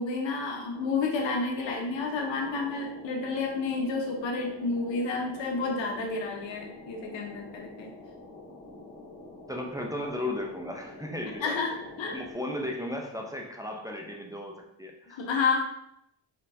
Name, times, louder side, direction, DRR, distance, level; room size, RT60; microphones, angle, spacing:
voice 1, 0.0-7.9 11.4-11.7 12.0-12.2 15.1-15.6, left 4 dB, 90° left, 1 dB, 1.0 m, -30 dB
sound 1, 0.7-12.3, left 2 dB, 25° left, 1.6 m, -47 dB
voice 2, 9.5-11.6 12.1-15.2, left 1 dB, 10° right, 0 dB, 0.4 m, -35 dB
4.4 x 3.7 x 2.6 m, 0.77 s
cardioid pair, 105°, 44 cm